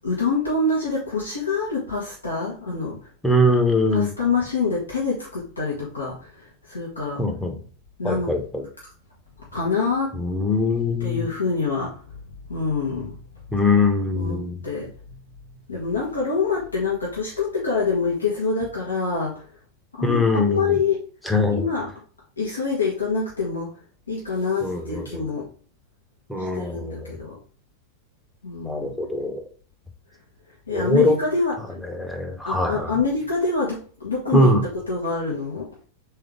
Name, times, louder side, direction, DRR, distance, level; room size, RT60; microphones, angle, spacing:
voice 1, 0.0-3.0 3.9-7.2 8.0-8.3 9.5-10.1 11.0-12.0 12.5-13.2 13.5-13.6 14.1-15.1 15.7-19.4 20.0-21.0 21.5-21.9 22.4-23.7 24.1-25.4 26.4-27.4 28.4-28.9 30.7-31.6 32.4-35.7, left 4 dB, 75° left, -4 dB, 1.1 m, -26 dB
voice 2, 3.2-4.1 7.2-7.6 8.0-8.7 10.2-11.3 13.5-14.6 20.0-20.8 21.2-21.7 24.6-25.2 26.3-27.1 28.6-29.4 30.7-31.2 31.8-32.9 34.3-34.6, left 2 dB, 5° left, 3 dB, 0.8 m, -22 dB
3.6 x 3.4 x 3.6 m, 0.43 s
figure-of-eight pair, 90°, 0 cm